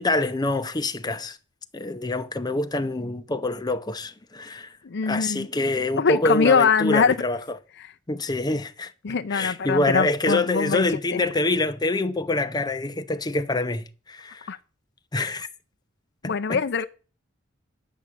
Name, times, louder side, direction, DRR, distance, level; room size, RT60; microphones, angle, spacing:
voice 1, 0.0-1.4 1.7-4.7 5.0-7.4 8.1-8.9 9.3-14.5 15.1-15.5 16.2-16.6, left 2 dB, 20° left, 0.7 m, -26 dB
voice 2, 4.8-5.5 6.0-7.2 7.8-7.9 9.0-10.8 11.1-11.2 14.5-14.6 16.2-16.8, left 5 dB, 60° left, 0.6 m, -22 dB
10.0 x 6.1 x 8.4 m
head